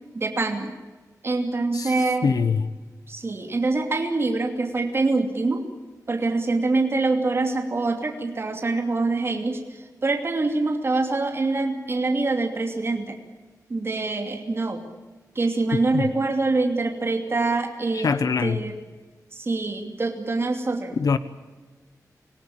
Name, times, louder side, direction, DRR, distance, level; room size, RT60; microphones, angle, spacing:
voice 1, 0.1-0.7 1.2-2.3 3.1-5.6 6.1-13.2 13.7-14.8 15.3-18.7 19.3-21.0, right 3 dB, 40° right, 3 dB, 2.8 m, -25 dB
voice 2, 2.2-2.7 15.9-16.0 17.9-18.6 21.0-21.2, left 5 dB, 70° left, 13 dB, 1.0 m, -23 dB
27.0 x 18.0 x 8.8 m, 1.3 s
wide cardioid pair, 150°, 6 cm